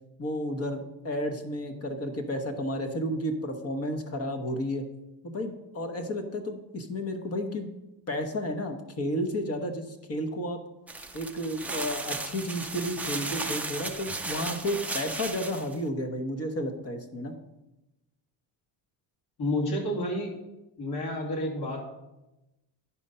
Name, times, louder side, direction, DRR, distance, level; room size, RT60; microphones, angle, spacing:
voice 1, 0.2-4.8 5.2-7.7 8.1-10.6 11.1-17.3, equal, 30° left, 5 dB, 1.1 m, -32 dB
sound 1, 10.9-15.7, right 2 dB, 5° right, 0.3 m, -35 dB
voice 2, 19.4-20.3 20.8-21.8, left 1 dB, 55° left, -2 dB, 2.5 m, -30 dB
10.0 x 5.2 x 5.5 m, 0.96 s
cardioid pair, 145°, 49 cm